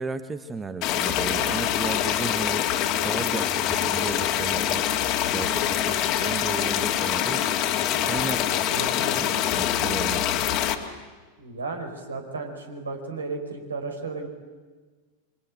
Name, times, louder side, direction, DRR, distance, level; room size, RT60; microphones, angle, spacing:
voice 1, 0.0-2.7 3.0-4.9 5.3-7.5 8.0-8.9 9.2-10.3, right 4 dB, 15° right, 12 dB, 1.1 m, -34 dB
sound 1, 0.8-10.8, left 11 dB, 40° left, 2.3 m, -25 dB
voice 2, 8.7-9.3 11.4-14.3, right 3 dB, 75° right, 5 dB, 5.0 m, -34 dB
26.5 x 24.0 x 8.9 m, 1.4 s
figure-of-eight pair, 90°, 0 cm